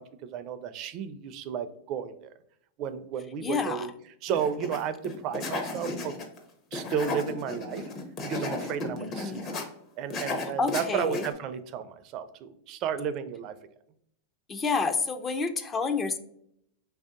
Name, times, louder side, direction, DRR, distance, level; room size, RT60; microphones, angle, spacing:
voice 1, 0.0-2.3 2.8-3.9 4.2-6.1 6.7-7.9 8.2-9.6 10.0-13.5, right 8 dB, 45° right, 12 dB, 0.4 m, -33 dB
voice 2, 3.4-3.9 9.0-9.5 10.6-11.2 14.5-16.2, left 4 dB, 20° left, 8 dB, 0.4 m, -29 dB
sound 1, 4.3-4.8 5.0-6.4 6.7-9.6 10.1-11.3, left 3 dB, 35° left, 0.8 m, -34 dB
3.3 x 2.7 x 3.6 m, 0.72 s
hypercardioid pair, 120°, 0 cm